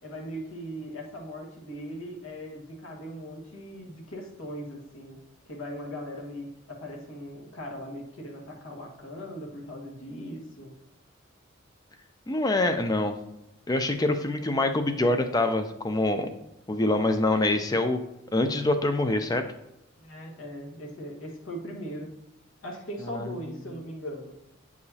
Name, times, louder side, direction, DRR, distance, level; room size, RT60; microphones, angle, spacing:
voice 1, 0.0-5.2 5.4-10.7 20.0-22.1 22.6-24.3, equal, 85° left, -1 dB, 1.5 m, -39 dB
voice 2, 12.3-13.1 13.7-16.3 16.7-18.0 18.3-19.4 23.1-23.3, left 2 dB, 20° left, 7 dB, 0.4 m, -25 dB
8.4 x 4.9 x 2.7 m, 0.85 s
head